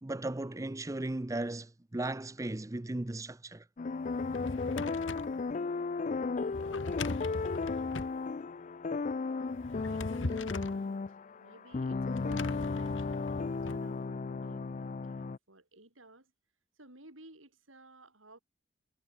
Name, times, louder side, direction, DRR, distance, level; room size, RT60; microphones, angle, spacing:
voice 1, 0.0-3.6, right 2 dB, 15° right, 0.5 m, -36 dB
sound 1, 3.8-15.4, left 4 dB, 40° left, 0.4 m, -35 dB
Drawer open or close, 4.0-5.4 6.5-8.2 9.5-10.8 12.1-13.8, left 2 dB, 70° left, 1.7 m, -40 dB
voice 2, 9.1-16.3 16.8-18.4, right 2 dB, 80° right, 7.7 m, -56 dB
head